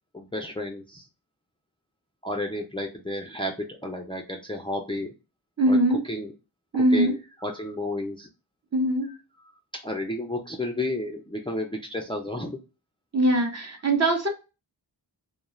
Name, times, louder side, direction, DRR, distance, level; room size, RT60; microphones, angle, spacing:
voice 1, 0.1-1.1 2.2-5.1 5.7-5.8 6.1-6.3 6.7-8.3 9.8-12.6, left 1 dB, 10° left, 2 dB, 0.5 m, -32 dB
voice 2, 5.6-6.0 6.7-7.1 8.7-9.1 13.1-14.3, right 1 dB, 35° right, 3 dB, 0.9 m, -21 dB
2.4 x 2.3 x 3.0 m, 0.30 s
cardioid pair, 50°, 44 cm